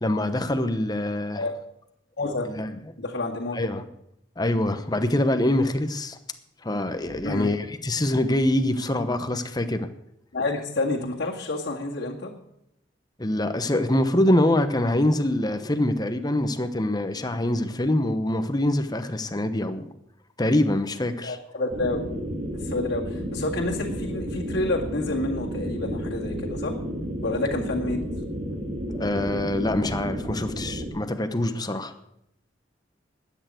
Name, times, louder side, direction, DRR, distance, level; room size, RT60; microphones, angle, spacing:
voice 1, 0.0-1.5 2.5-2.7 3.5-3.8 4.4-6.2 6.6-9.9 13.2-19.9 20.4-21.4 28.9-31.9, left 1 dB, 20° left, 9 dB, 1.0 m, -24 dB
voice 2, 2.2-2.5 3.0-3.6 7.2-7.5 10.3-12.3 21.2-22.0 22.5-26.8 27.2-28.0, left 2 dB, 60° left, -4 dB, 2.1 m, -28 dB
sound 1, 21.7-30.9, equal, 35° right, 2.0 m, -32 dB
12.5 x 9.2 x 7.7 m, 0.78 s
head